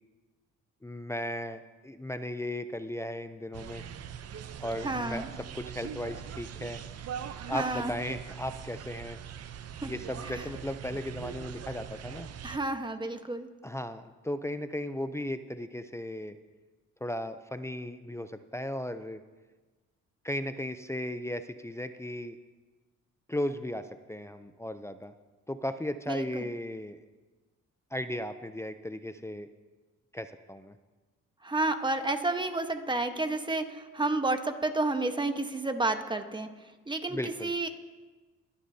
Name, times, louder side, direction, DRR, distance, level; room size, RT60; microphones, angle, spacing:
voice 1, 0.8-3.8 4.6-5.2 5.5-6.8 7.5-9.2 9.8-12.3 13.6-16.4 17.0-19.2 20.2-22.4 23.3-25.1 25.5-27.0 27.9-29.5 30.1-30.8 37.1-37.5, left 1 dB, 10° left, 10 dB, 0.5 m, -36 dB
sound 1, 3.5-12.6, right 8 dB, 55° right, 0.7 m, -42 dB
voice 2, 4.8-5.3 7.5-7.9 9.8-9.9 10.2-10.4 12.4-13.5 26.1-26.4 31.4-36.5 36.9-37.7, right 2 dB, 15° right, 7 dB, 1.1 m, -30 dB
23.5 x 10.0 x 2.8 m, 1.3 s
cardioid pair, 90°, 30 cm